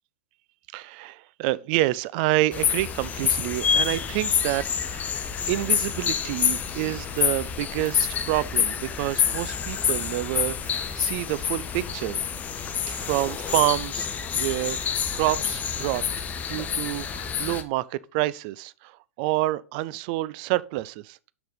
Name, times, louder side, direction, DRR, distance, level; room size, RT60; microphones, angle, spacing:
voice 1, 0.7-5.1 5.5-12.2 12.9-14.1 14.4-21.2, right 17 dB, 40° right, 0.4 m, -28 dB
sound 1, 2.5-17.6, left 7 dB, 20° left, 0.8 m, -27 dB
6.8 x 6.4 x 3.9 m
figure-of-eight pair, 100°, 8 cm